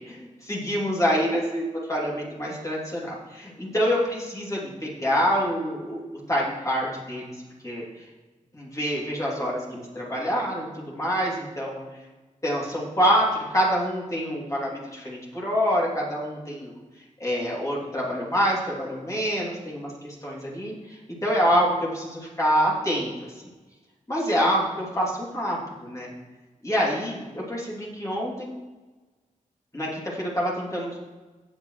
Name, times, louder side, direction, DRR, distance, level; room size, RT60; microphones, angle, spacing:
voice 1, 0.0-7.3 7.6-7.8 8.5-11.8 12.4-16.7 17.2-23.1 24.1-26.1 26.6-28.5 29.7-31.0, equal, 25° left, -5 dB, 3.1 m, -26 dB
17.0 x 7.2 x 3.3 m, 1.2 s
wide cardioid pair, 90°, 14 cm